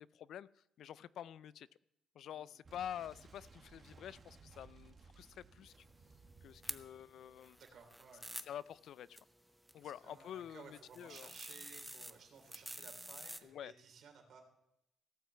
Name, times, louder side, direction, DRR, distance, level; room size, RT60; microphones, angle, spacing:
voice 1, 0.0-1.7 2.2-5.9 6.4-7.6 8.5-9.2 9.7-11.3 13.4-13.7, left 10 dB, 70° left, 19 dB, 0.4 m, -48 dB
Boom, 2.6-8.2, right 4 dB, 40° right, 1.3 m, -61 dB
sound 1, 5.7-13.4, equal, 5° right, 0.8 m, -51 dB
voice 2, 7.6-8.3 9.8-14.4, right 6 dB, 65° right, 4 dB, 3.2 m, -57 dB
17.0 x 5.8 x 7.5 m, 0.84 s
cardioid pair, 90°, 0 cm